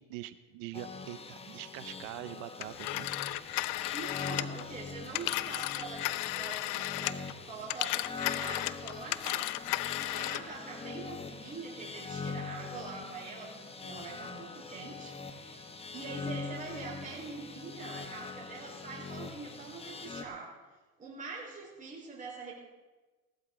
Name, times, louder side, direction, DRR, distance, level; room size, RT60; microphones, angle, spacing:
voice 1, 0.0-3.1 3.5-3.9, right 16 dB, 75° right, 12 dB, 0.7 m, -44 dB
sound 1, 0.7-20.2, left 4 dB, 15° left, 1.0 m, -43 dB
Telephone, 2.6-7.3 7.6-10.5, left 18 dB, 75° left, 0.6 m, -34 dB
voice 2, 3.8-20.5 21.0-22.5, right 4 dB, 25° right, -3 dB, 4.2 m, -44 dB
16.5 x 12.5 x 3.8 m, 1.2 s
supercardioid pair, 105°, 34 cm